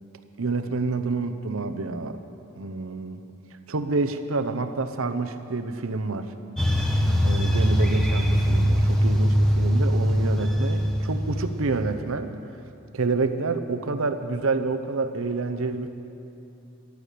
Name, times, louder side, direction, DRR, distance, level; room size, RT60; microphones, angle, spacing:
voice 1, 0.4-2.2 2.6-3.2 3.7-6.3 7.2-12.3 12.9-15.9, right 3 dB, 75° right, 8 dB, 0.8 m, -28 dB
sound 1, 6.6-11.9, equal, 5° left, 1.2 m, -22 dB
14.5 x 12.0 x 6.7 m, 2.7 s
head